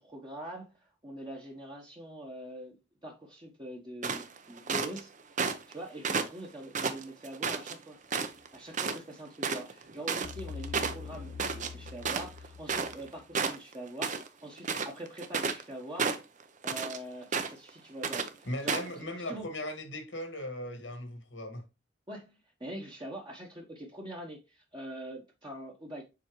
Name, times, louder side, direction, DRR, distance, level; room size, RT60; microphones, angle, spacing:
voice 1, 0.0-2.8 3.0-5.1 5.7-8.0 8.5-16.1 16.6-19.5 22.1-26.0, right 1 dB, 25° right, 1.2 m, -44 dB
sound 1, 4.0-5.0 5.4-5.7 6.0-7.7 8.1-8.5 8.7-9.0 9.2-13.1 13.3-14.3 14.6-15.6 16.0-17.0 17.3-17.7 18.0-18.3 18.7-18.9, right 5 dB, 45° right, 0.7 m, -32 dB
sound 2, 10.2-13.4, left 5 dB, 55° left, 0.4 m, -44 dB
voice 2, 18.5-21.6, left 1 dB, 90° left, 1.9 m, -38 dB
7.1 x 4.3 x 3.1 m
head